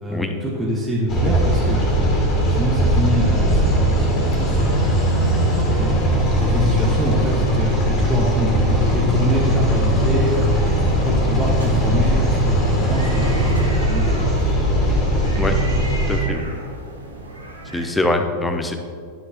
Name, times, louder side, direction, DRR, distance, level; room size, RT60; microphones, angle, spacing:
voice 1, 0.0-1.9 2.5-4.8 5.8-6.0 6.4-13.4 13.9-14.3, equal, 10° right, -5 dB, 1.1 m, -25 dB
sound 1, 1.1-16.2, equal, 30° left, 2.1 m, -19 dB
sound 2, 10.1-17.9, right 1 dB, 80° right, 1.3 m, -36 dB
voice 2, 16.1-16.5 17.7-18.8, left 2 dB, 10° left, 5 dB, 0.7 m, -23 dB
11.5 x 6.4 x 2.9 m, 2.1 s
figure-of-eight pair, 90°, 0 cm